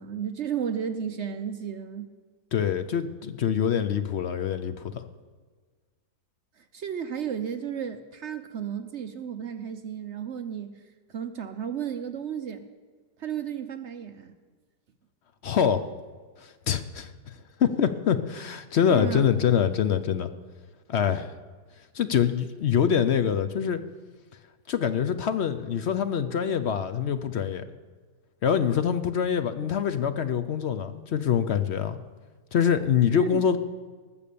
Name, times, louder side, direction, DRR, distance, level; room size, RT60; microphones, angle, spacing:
voice 1, 0.0-2.1 6.6-10.7 11.1-12.7 13.2-14.3 18.9-19.3 33.1-33.5, right 8 dB, 55° right, 8 dB, 0.9 m, -33 dB
voice 2, 2.5-5.1 15.4-15.8 16.4-17.3 17.6-20.3 20.9-21.3 21.9-23.8 24.7-27.7 28.4-32.0 32.5-33.6, left 8 dB, 60° left, 11 dB, 0.7 m, -25 dB
19.5 x 6.9 x 6.9 m, 1.5 s
omnidirectional pair, 1.7 m